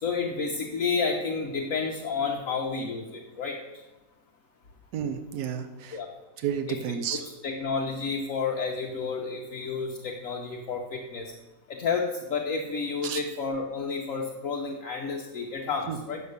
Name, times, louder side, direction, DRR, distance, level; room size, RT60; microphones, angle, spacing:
voice 1, 0.0-3.6 5.9-6.1 6.7-6.8 7.2-11.3 11.7-16.2, left 5 dB, 60° left, 0 dB, 1.2 m, -30 dB
voice 2, 4.9-6.0 6.4-7.2 13.0-13.2 15.9-16.0, right 8 dB, 80° right, 8 dB, 1.2 m, -31 dB
8.4 x 7.0 x 6.5 m, 1.0 s
omnidirectional pair, 1.6 m